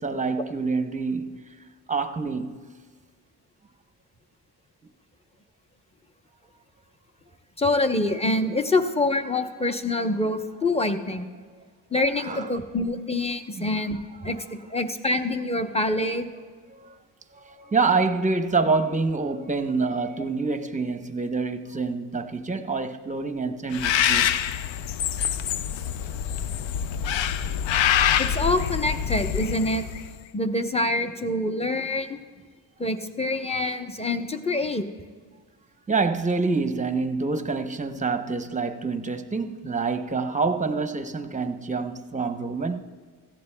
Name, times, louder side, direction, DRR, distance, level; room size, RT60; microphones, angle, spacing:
voice 1, 0.0-1.4 1.9-2.6 12.2-12.5 13.5-13.7 16.7-17.0 17.3-24.3 35.9-42.8, right 4 dB, 15° right, 0.7 m, -27 dB
voice 2, 7.6-11.3 11.9-14.4 14.7-16.3 28.2-29.9 30.3-32.2 32.8-34.9, left 2 dB, 15° left, 0.8 m, -25 dB
Bird, 23.7-30.1, left 9 dB, 90° left, 0.5 m, -25 dB
17.0 x 14.5 x 2.2 m
cardioid pair, 80°, 44 cm